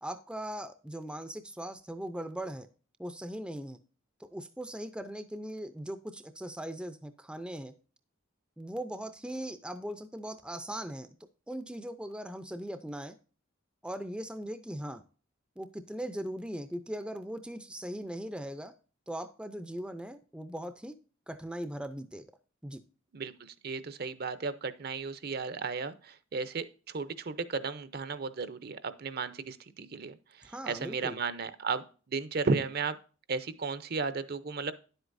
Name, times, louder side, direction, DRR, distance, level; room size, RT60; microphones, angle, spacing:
voice 1, 0.0-2.7 3.0-3.8 4.2-7.7 8.6-11.1 11.5-13.2 13.8-15.0 15.6-18.7 19.1-21.0 21.3-22.3 22.6-22.8 30.4-31.2, right 1 dB, 5° right, 10 dB, 0.4 m, -39 dB
voice 2, 23.6-33.0 33.3-34.7, right 4 dB, 50° right, 13 dB, 0.6 m, -34 dB
10.0 x 8.0 x 2.6 m, 0.37 s
head